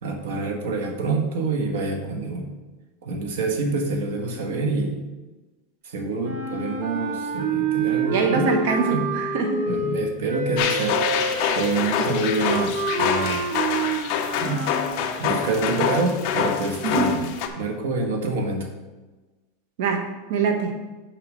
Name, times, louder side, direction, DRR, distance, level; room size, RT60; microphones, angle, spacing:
voice 1, 0.0-2.5 3.0-5.0 5.8-8.5 8.9-9.1 9.7-11.3 11.5-13.4 14.4-14.7 15.2-17.3 17.6-18.7, right 3 dB, 75° right, 4 dB, 1.5 m, -27 dB
sound 1, 6.2-14.9, right 3 dB, 35° right, 1.0 m, -28 dB
voice 2, 8.1-9.7 16.8-17.1 19.8-20.7, right 4 dB, 55° right, 4 dB, 1.1 m, -24 dB
sound 2, 10.6-17.5, left 8 dB, 40° left, 0.7 m, -26 dB
6.8 x 4.8 x 6.3 m, 1.2 s
supercardioid pair, 180°, 0 cm